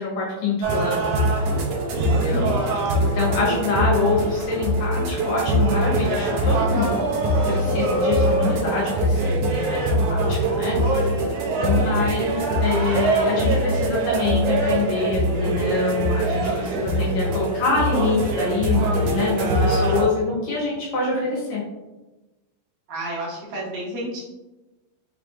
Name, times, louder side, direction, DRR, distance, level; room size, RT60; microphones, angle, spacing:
voice 1, 0.0-1.4 1.9-2.5 3.1-11.3 11.6-21.6, left 3 dB, 70° left, -5 dB, 2.6 m, -26 dB
sound 1, 0.6-20.1, right 1 dB, 90° right, 1.7 m, -22 dB
voice 2, 1.9-2.5 22.9-24.2, right 1 dB, 70° right, -6 dB, 2.5 m, -31 dB
6.0 x 3.3 x 2.5 m, 1.1 s
omnidirectional pair, 4.3 m